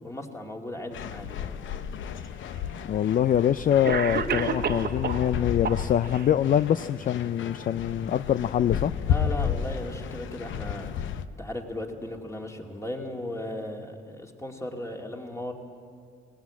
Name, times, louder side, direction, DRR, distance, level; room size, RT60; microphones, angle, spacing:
voice 1, 0.0-1.6 9.1-11.1 11.4-15.5, left 1 dB, 15° left, 2 dB, 2.4 m, -36 dB
sound 1, 0.9-11.2, left 8 dB, 75° left, 0.8 m, -33 dB
Cough, 2.1-2.2 3.2-3.3 3.8-5.3 5.6-6.3, right 6 dB, 55° right, 1.2 m, -29 dB
voice 2, 2.9-8.9, left 10 dB, 45° left, 14 dB, 0.4 m, -24 dB
18.5 x 18.5 x 8.5 m, 2.3 s
cardioid pair, 90°, 20 cm